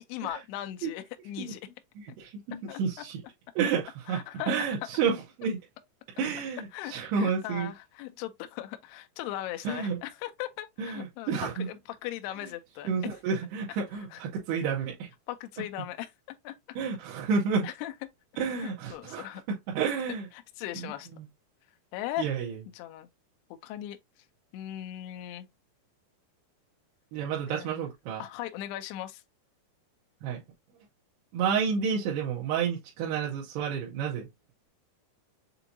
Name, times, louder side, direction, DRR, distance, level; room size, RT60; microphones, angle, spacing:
voice 1, 0.1-1.6 2.7-2.8 4.1-4.5 6.7-12.9 14.1-14.2 15.3-16.1 16.4-16.5 17.6-17.9 18.6-19.4 20.6-21.1 21.9-22.3 22.8-23.1 23.6-24.0 24.5-25.5 27.5-27.7 28.2-29.2, left 13 dB, 80° left, 2.5 m, -38 dB
voice 2, 2.0-3.2 3.6-5.6 6.2-7.7 9.6-10.0 10.8-11.7 12.8-15.1 16.8-17.7 18.4-20.3 20.7-21.3 22.2-22.6 27.1-28.2 30.2-30.4 31.3-34.3, right 6 dB, 80° right, 2.7 m, -30 dB
6.9 x 2.7 x 2.6 m
omnidirectional pair, 4.9 m